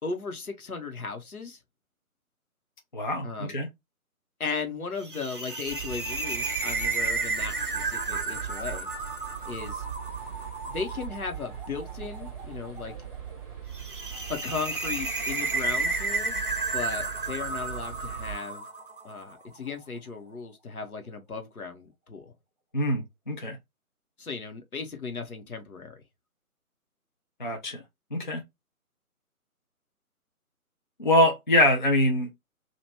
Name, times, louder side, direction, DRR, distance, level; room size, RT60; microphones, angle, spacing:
voice 1, 0.0-1.6 3.2-3.5 4.4-8.9 9.5-9.8 10.7-12.9 14.3-16.4 16.7-18.6 19.0-22.3 24.2-26.0, left 4 dB, 70° left, 1.1 m, -36 dB
voice 2, 2.9-3.7 22.7-23.6 27.4-27.8 28.1-28.4 31.0-32.3, left 1 dB, 35° left, 0.5 m, -24 dB
sound 1, 5.0-19.3, right 3 dB, 35° right, 0.7 m, -33 dB
sound 2, 5.6-18.3, right 9 dB, ahead, 0.8 m, -41 dB
2.9 x 2.5 x 3.3 m
figure-of-eight pair, 145°, 44 cm